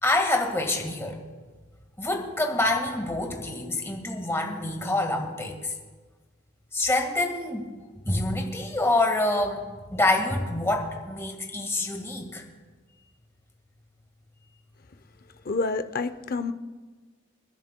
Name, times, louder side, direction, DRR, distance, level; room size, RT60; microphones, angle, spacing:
voice 1, 0.0-1.2 2.0-5.7 6.7-7.7 8.0-9.6 9.9-12.4, left 2 dB, 15° left, 2 dB, 1.7 m, -26 dB
voice 2, 15.5-16.5, left 3 dB, 45° left, 10 dB, 0.6 m, -28 dB
29.0 x 10.5 x 2.2 m, 1.4 s
head